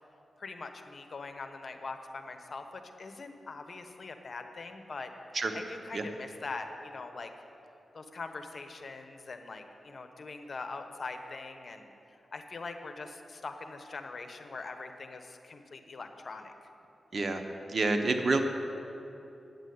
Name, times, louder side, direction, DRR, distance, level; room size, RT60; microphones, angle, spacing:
voice 1, 0.4-5.1 5.5-7.3 7.9-16.5, left 3 dB, 60° left, 6 dB, 1.0 m, -42 dB
voice 2, 17.1-17.4 17.7-18.4, right 3 dB, 55° right, 5 dB, 1.1 m, -28 dB
9.4 x 8.1 x 9.5 m, 2.8 s
cardioid pair, 60°, 0 cm